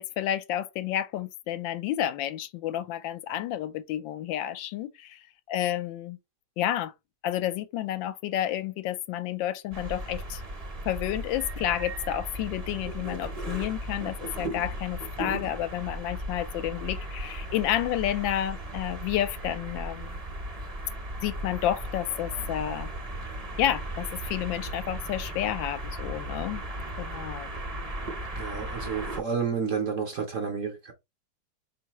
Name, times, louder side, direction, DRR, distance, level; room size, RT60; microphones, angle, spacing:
voice 1, 0.0-5.2 5.5-6.2 6.6-6.9 7.2-10.4 10.8-20.2 21.2-22.9 23.6-26.6 27.0-27.5, left 12 dB, 80° left, 1.3 m, -30 dB
sound 1, 9.7-29.2, right 1 dB, 35° right, 0.6 m, -36 dB
voice 2, 28.3-30.9, right 6 dB, 60° right, 0.9 m, -30 dB
4.5 x 3.1 x 2.9 m
omnidirectional pair, 2.1 m